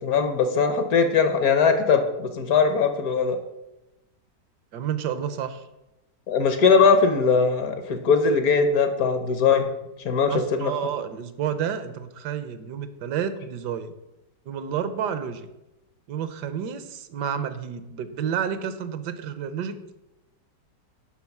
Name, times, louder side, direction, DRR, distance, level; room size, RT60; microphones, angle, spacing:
voice 1, 0.0-3.4 6.3-9.7 10.0-10.7, left 5 dB, 60° left, 8 dB, 1.2 m, -20 dB
voice 2, 4.7-5.6 10.3-13.9 14.5-15.5 16.1-19.8, right 8 dB, 75° right, 11 dB, 1.3 m, -30 dB
11.0 x 3.8 x 5.9 m, 0.94 s
omnidirectional pair, 1.9 m